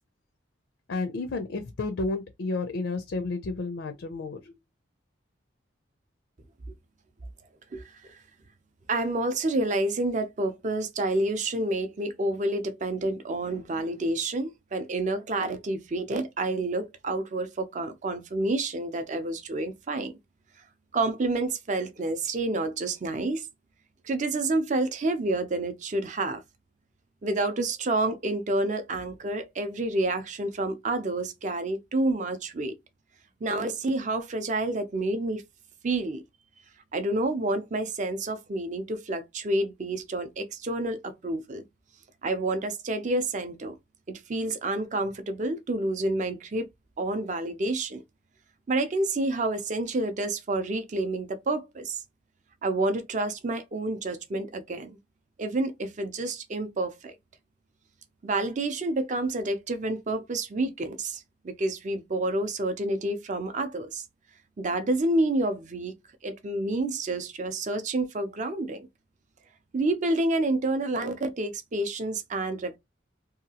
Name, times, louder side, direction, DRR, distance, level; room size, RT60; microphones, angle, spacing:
voice 1, 0.9-4.5, left 3 dB, 70° left, 0.4 m, -31 dB
voice 2, 7.7-8.2 8.9-20.1 20.9-23.5 24.0-26.4 27.2-32.7 33.4-35.4 35.8-36.2 36.9-41.6 42.2-43.8 44.1-46.7 47.0-48.0 48.7-52.0 52.6-55.0 55.4-57.2 58.2-64.0 64.6-65.9 66.2-68.9 69.7-72.8, right 2 dB, 40° right, 0.4 m, -29 dB
2.8 x 2.3 x 2.8 m
head